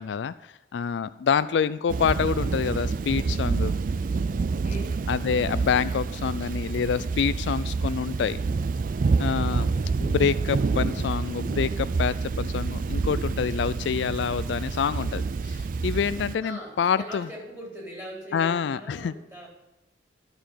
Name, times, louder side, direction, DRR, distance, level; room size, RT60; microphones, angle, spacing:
voice 1, 0.0-3.7 5.1-8.4 9.2-17.3 18.3-19.1, left 6 dB, 70° left, 15 dB, 0.3 m, -27 dB
voice 2, 1.4-1.7 4.6-5.1 9.5-10.0 16.4-19.5, equal, 15° right, -4 dB, 3.8 m, -41 dB
Thunder / Rain, 1.9-16.4, right 4 dB, 45° right, 0.3 m, -28 dB
12.5 x 6.9 x 5.6 m, 0.98 s
head